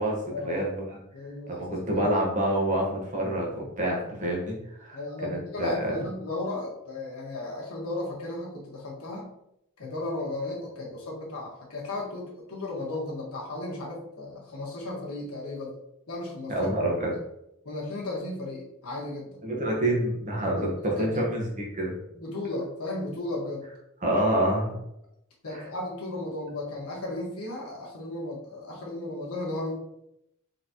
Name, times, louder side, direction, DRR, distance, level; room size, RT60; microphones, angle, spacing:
voice 1, 0.0-1.0 1.5-6.0 16.5-17.1 19.4-21.9 24.0-24.7 25.5-25.6, right 1 dB, 35° right, -2 dB, 1.1 m, -27 dB
voice 2, 1.1-2.0 4.9-9.3 9.8-15.7 16.1-16.7 17.6-19.4 20.5-21.2 22.1-23.6 25.4-29.8, left 2 dB, 85° left, -3 dB, 1.3 m, -35 dB
4.2 x 3.3 x 2.8 m, 0.79 s
head